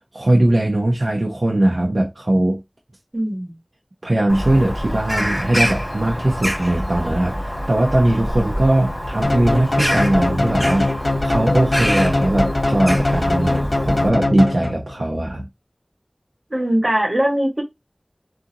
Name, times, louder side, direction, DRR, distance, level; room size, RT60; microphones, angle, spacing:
voice 1, 0.1-2.6 4.0-10.9 11.2-15.5, right 1 dB, 80° right, 0.7 m, -19 dB
voice 2, 3.1-3.6 16.5-17.6, right 1 dB, 55° right, 1.4 m, -20 dB
Bird vocalization bird call bird song, 4.3-14.1, equal, 15° left, 1.9 m, -26 dB
sound 1, 9.2-15.0, left 2 dB, 80° left, 0.5 m, -21 dB
3.8 x 2.5 x 2.8 m
wide cardioid pair, 40°, 0 cm